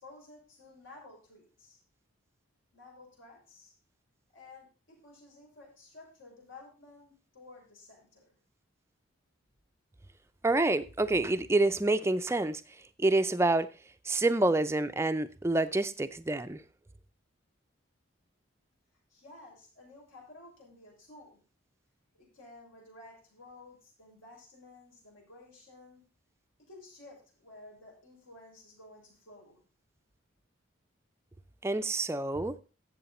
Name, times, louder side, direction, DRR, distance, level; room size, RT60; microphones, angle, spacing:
voice 1, 0.0-1.8 2.7-3.7 4.3-8.4 19.1-21.4 22.1-26.1 26.6-29.6, left 2 dB, 75° left, 6.0 m, -53 dB
voice 2, 10.4-12.6 13.0-13.7 14.0-16.6 31.6-32.6, right 2 dB, 15° right, 0.4 m, -27 dB
12.5 x 7.8 x 4.2 m
head